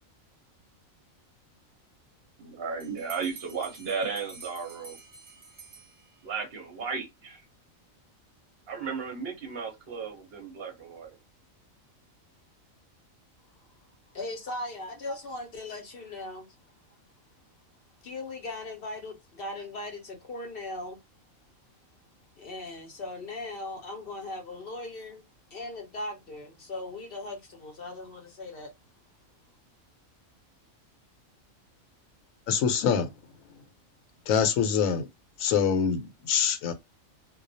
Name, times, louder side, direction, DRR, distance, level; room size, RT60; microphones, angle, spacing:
voice 1, 2.4-5.0 6.2-7.4 8.7-11.2, right 5 dB, 55° right, 0.8 m, -35 dB
Bell, 2.8-6.4, right 5 dB, 20° right, 0.7 m, -49 dB
voice 2, 14.1-16.5 18.0-21.0 22.4-25.2 25.5-28.7, left 2 dB, 55° left, 0.7 m, -38 dB
voice 3, 32.5-33.1 34.3-35.1 35.4-36.7, left 7 dB, 80° left, 1.0 m, -25 dB
2.3 x 2.1 x 2.5 m
omnidirectional pair, 1.4 m